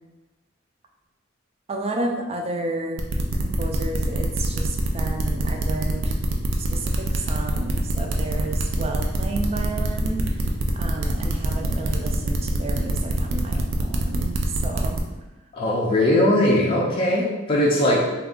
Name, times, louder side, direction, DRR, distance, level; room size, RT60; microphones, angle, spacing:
voice 1, 1.7-3.1 3.3-6.2 6.6-10.5 10.7-15.0, right 2 dB, 30° right, 2 dB, 0.4 m, -31 dB
sound 1, 3.0-15.0, right 2 dB, 90° right, 0.5 m, -26 dB
voice 2, 15.5-18.0, left 1 dB, 25° left, -4 dB, 0.5 m, -20 dB
3.4 x 2.3 x 3.7 m, 1.1 s
head